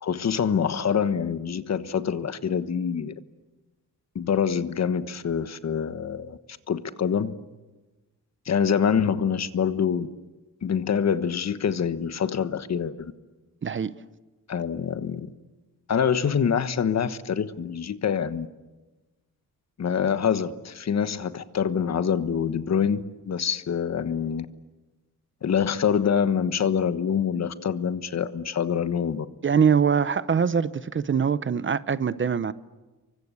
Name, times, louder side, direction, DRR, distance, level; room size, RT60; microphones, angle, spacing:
voice 1, 0.0-3.1 4.1-6.4 6.7-7.3 8.4-10.1 10.6-13.1 14.5-15.3 15.9-18.5 19.8-24.5 25.4-29.3, left 7 dB, 50° left, 12 dB, 1.3 m, -25 dB
voice 2, 13.6-13.9 29.4-32.5, right 6 dB, 35° right, 15 dB, 0.8 m, -23 dB
28.5 x 24.5 x 8.3 m, 1.2 s
cardioid pair, 115°, 34 cm